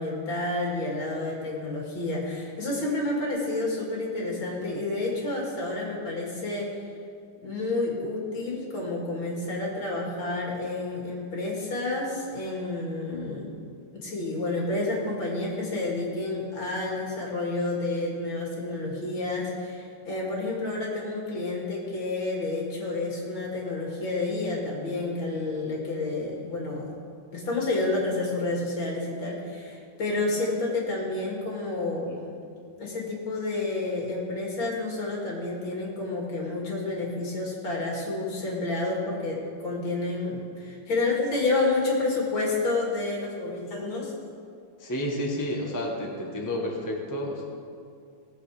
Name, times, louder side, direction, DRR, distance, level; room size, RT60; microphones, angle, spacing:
voice 1, 0.0-6.8 7.4-13.5 13.9-26.9 27.3-32.1 32.8-44.1, left 2 dB, 70° left, -3 dB, 3.2 m, -29 dB
voice 2, 31.9-32.2 44.8-47.4, left 1 dB, 10° left, -1 dB, 1.2 m, -31 dB
18.0 x 7.3 x 5.0 m, 2.3 s
omnidirectional pair, 2.2 m